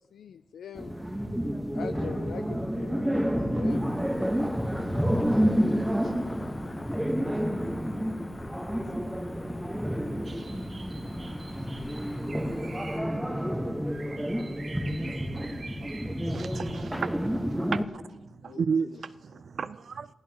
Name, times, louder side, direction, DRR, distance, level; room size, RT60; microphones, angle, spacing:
voice 1, 0.1-1.0 1.7-4.0 17.6-17.7 18.4-18.9, left 7 dB, 90° left, 0.4 m, -43 dB
sound 1, 0.8-17.9, equal, 5° right, 1.2 m, -29 dB
Cricket / Motor vehicle (road), 3.7-13.0, left 2 dB, 25° left, 0.8 m, -45 dB
voice 2, 4.8-6.8 7.3-7.4 9.5-10.6 11.9-12.5 13.8-14.6 14.8-14.9 15.2-15.9 17.6-17.7, left 3 dB, 65° left, 2.8 m, -57 dB
sound 2, 10.2-17.4, right 3 dB, 45° right, 1.5 m, -47 dB
voice 3, 16.3-18.0 18.4-20.1, right 6 dB, 65° right, 0.4 m, -33 dB
27.5 x 16.5 x 2.9 m
wide cardioid pair, 100°, 0 cm